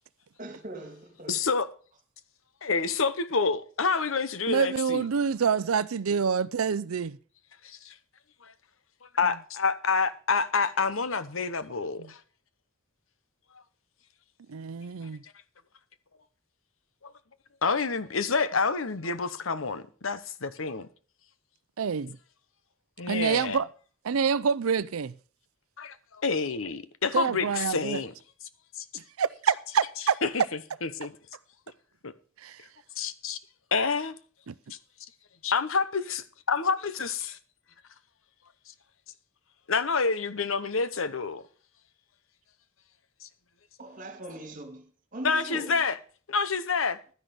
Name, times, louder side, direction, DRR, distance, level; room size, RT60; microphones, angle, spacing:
voice 1, 0.4-1.4 43.8-45.8, right 1 dB, 40° right, 2.3 m, -41 dB
voice 2, 1.3-1.7 2.6-5.0 7.6-7.9 8.4-8.5 9.1-12.2 17.0-17.1 17.6-20.9 23.0-23.6 25.8-28.1 28.8-28.9 30.2-30.4 30.8-31.1 32.0-32.1 33.0-33.4 33.7-34.2 34.7-34.8 35.4-37.4 39.7-41.4 43.2-43.3 45.2-46.0 46.3-47.0, left 4 dB, 70° left, 1.0 m, -28 dB
voice 3, 4.5-7.2 12.0-12.1 14.5-15.2 21.8-22.2 23.1-23.7 24.0-25.1 27.1-28.0 28.9-30.2 32.4-32.6 34.5-34.6, right 6 dB, 80° right, 0.5 m, -27 dB
12.5 x 10.5 x 5.1 m
head